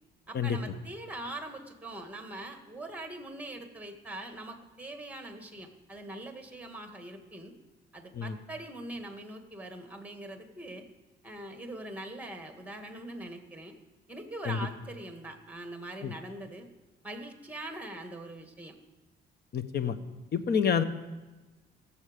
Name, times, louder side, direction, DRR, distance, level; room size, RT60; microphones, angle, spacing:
voice 1, 0.3-7.5 7.9-10.8 11.2-13.7 14.1-16.7 17.0-18.7, right 1 dB, 5° right, 6 dB, 1.7 m, -42 dB
voice 2, 19.5-20.0 20.3-20.8, left 7 dB, 55° left, 11 dB, 1.0 m, -28 dB
17.5 x 7.2 x 5.1 m, 1.2 s
cardioid pair, 90°, 20 cm